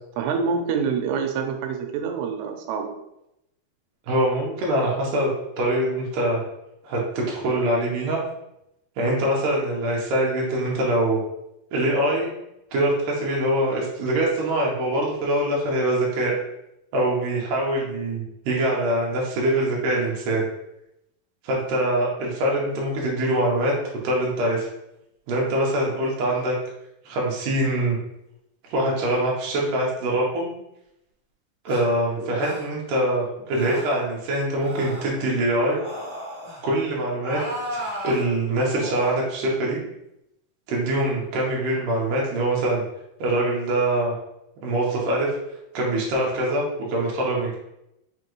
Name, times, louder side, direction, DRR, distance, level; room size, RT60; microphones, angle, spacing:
voice 1, 0.2-2.9 32.2-32.4, right 5 dB, 85° right, 4 dB, 2.7 m, -26 dB
voice 2, 4.1-6.4 6.8-8.2 9.0-11.2 11.7-12.3 12.7-16.3 16.9-20.4 21.4-23.8 24.0-24.7 25.3-26.5 27.1-28.0 28.7-30.5 31.7-35.8 36.6-37.4 37.7-39.8 40.7-42.8 43.2-44.1 44.6-45.3 45.7-46.6 46.9-47.6, right 1 dB, 70° right, -3 dB, 2.2 m, -23 dB
sound 1, 31.7-31.8 32.4-32.7 33.5-34.0 34.6-35.1 35.7-36.6 37.2-38.2 38.8-39.1, equal, 45° right, 1.1 m, -34 dB
6.2 x 2.8 x 3.0 m, 0.84 s
omnidirectional pair, 4.6 m